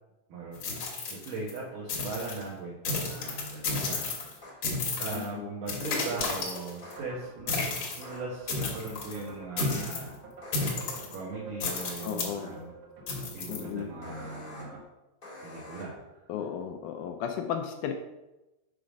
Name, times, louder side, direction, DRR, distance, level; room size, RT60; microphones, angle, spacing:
voice 1, 0.3-0.7 1.1-4.1 4.4-4.6 5.0-10.1 11.1-12.7 13.3-14.8 15.4-16.0, right 3 dB, 75° right, -6 dB, 2.8 m, -39 dB
sound 1, 0.5-1.6 1.9-2.4 2.9-4.4 4.6-5.3 5.7-6.9 7.5-8.0 8.5-9.2 9.6-10.1 10.5-11.2 11.6-12.3 13.1-13.6, left 3 dB, 55° left, 1.9 m, -32 dB
sound 2, 3.2-3.3 4.4-4.5 6.8-7.0 8.0-8.2 10.4-10.7 11.6-11.9 14.0-14.6 15.2-15.8, left 2 dB, 25° left, 1.2 m, -46 dB
voice 2, 5.1-5.5 12.0-12.6 13.5-13.9 16.3-17.9, left 8 dB, 80° left, 5 dB, 1.9 m, -34 dB
sound 3, 6.8-14.8, right 1 dB, 60° right, 1.1 m, -48 dB
6.7 x 5.0 x 5.1 m, 1.0 s
omnidirectional pair, 3.8 m